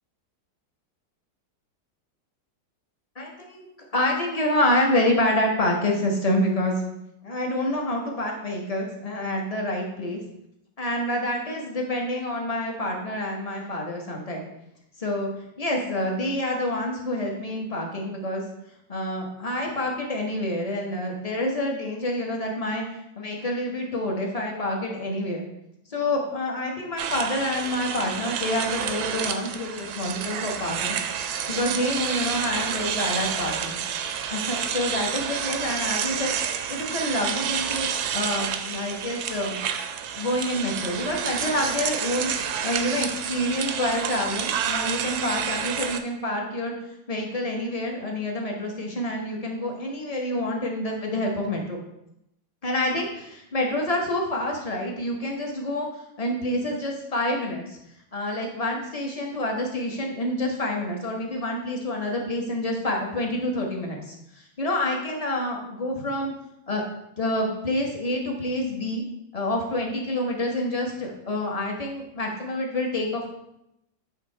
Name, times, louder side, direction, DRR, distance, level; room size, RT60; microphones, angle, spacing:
voice 1, 3.2-6.8 7.2-10.2 10.8-14.4 15.0-15.3 15.6-18.4 18.9-25.5 25.9-31.0 31.5-33.8 34.3-36.3 36.7-37.9 38.1-39.6 40.2-46.7 47.1-51.8 52.6-55.9 56.2-57.8 58.1-66.3 66.7-66.8 67.2-69.0 69.3-73.3, left 1 dB, 30° left, 0 dB, 0.6 m, -27 dB
sound 1, 27.0-46.0, right 8 dB, 70° right, 0.9 m, -29 dB
8.4 x 3.2 x 4.4 m, 0.82 s
omnidirectional pair, 2.0 m